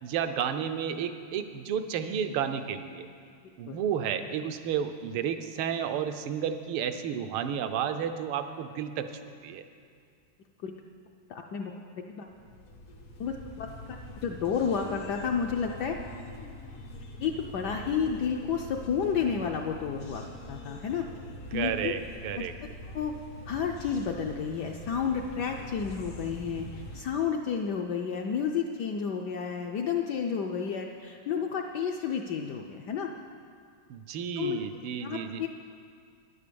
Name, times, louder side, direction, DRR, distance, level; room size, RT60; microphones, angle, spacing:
voice 1, 0.0-3.1 3.6-9.1 9.4-9.7 21.5-22.5 33.9-35.4, right 8 dB, 80° right, 9 dB, 1.5 m, -32 dB
voice 2, 11.3-12.3 13.2-16.0 17.2-21.0 21.5-21.9 22.4-22.7 22.9-23.1 23.5-33.1 34.4-34.6 35.0-35.5, left 6 dB, 70° left, 2 dB, 1.0 m, -31 dB
sound 1, 12.3-27.0, left 1 dB, 90° left, 2.2 m, -44 dB
11.0 x 9.8 x 6.9 m, 2.2 s
omnidirectional pair, 2.4 m